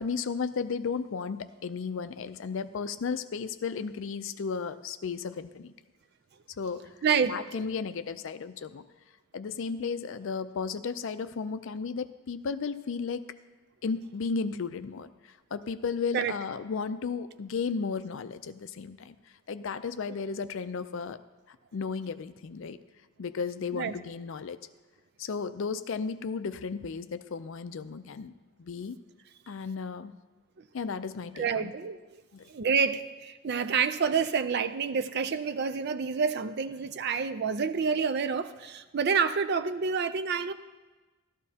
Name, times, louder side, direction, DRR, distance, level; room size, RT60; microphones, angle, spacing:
voice 1, 0.0-5.7 6.6-6.8 7.3-8.8 9.3-13.2 13.8-15.1 15.5-19.2 19.5-21.2 21.7-22.8 23.2-24.6 25.2-28.3 28.6-29.0 29.5-30.1 30.7-31.7 32.3-32.5, left 5 dB, 60° left, 12 dB, 0.4 m, -34 dB
voice 2, 7.0-7.4 16.1-16.3 23.7-23.9 31.4-32.0 32.5-40.5, right 6 dB, 50° right, 10 dB, 0.4 m, -28 dB
14.0 x 12.5 x 2.8 m, 1.2 s
head